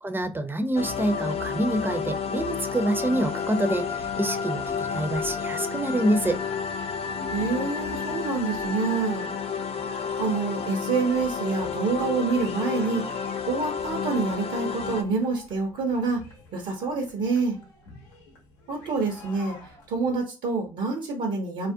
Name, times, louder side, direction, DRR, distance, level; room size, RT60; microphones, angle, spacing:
voice 1, 0.0-6.4, right 1 dB, 15° right, 0.5 m, -26 dB
sound 1, 0.6-20.2, left 2 dB, 85° left, 0.7 m, -46 dB
sound 2, 0.8-15.0, left 6 dB, 45° left, 0.5 m, -31 dB
voice 2, 7.3-9.3 10.2-13.2 13.5-16.2 16.5-17.6 18.7-19.6 19.9-21.7, right 4 dB, 70° right, 0.8 m, -27 dB
2.4 x 2.1 x 2.6 m
hypercardioid pair, 50°, 14 cm